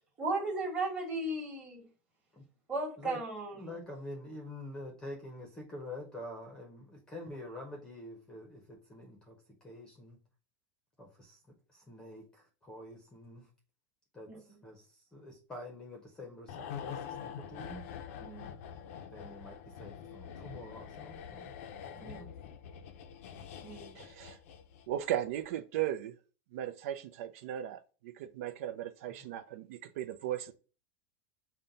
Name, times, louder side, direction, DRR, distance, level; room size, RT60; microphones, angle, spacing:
voice 1, 0.2-1.9 2.7-3.7 14.3-14.4 18.2-18.5 22.0-22.3 23.6-24.0, right 2 dB, 15° right, 1.4 m, -36 dB
voice 2, 3.5-10.2 11.0-11.4 11.7-13.5 14.1-17.8 19.1-21.5 21.9-22.3 29.2-29.3, left 1 dB, 10° left, 0.7 m, -47 dB
sound 1, 16.5-25.0 25.3-25.5, left 8 dB, 70° left, 0.5 m, -45 dB
voice 3, 23.9-24.4 24.9-26.2 26.5-30.5, right 11 dB, 70° right, 0.4 m, -37 dB
5.5 x 2.2 x 3.8 m
supercardioid pair, 165°, 8 cm